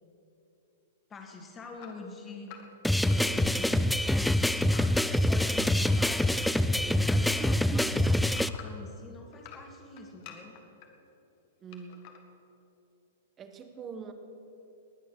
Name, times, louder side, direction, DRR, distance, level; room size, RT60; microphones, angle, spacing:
voice 1, 1.1-2.6 3.1-4.2 5.3-10.6, left 3 dB, 20° left, 3 dB, 2.2 m, -46 dB
sound 1, 1.8-6.6 7.0-8.9 9.3-10.9 11.7-12.2, left 8 dB, 45° left, 1.7 m, -50 dB
sound 2, 2.8-8.5, left 1 dB, ahead, 0.4 m, -25 dB
voice 2, 7.4-8.0 11.6-12.3 13.4-14.1, right 6 dB, 25° right, 7 dB, 1.4 m, -43 dB
20.0 x 9.6 x 6.4 m, 2.9 s
figure-of-eight pair, 105°, 0 cm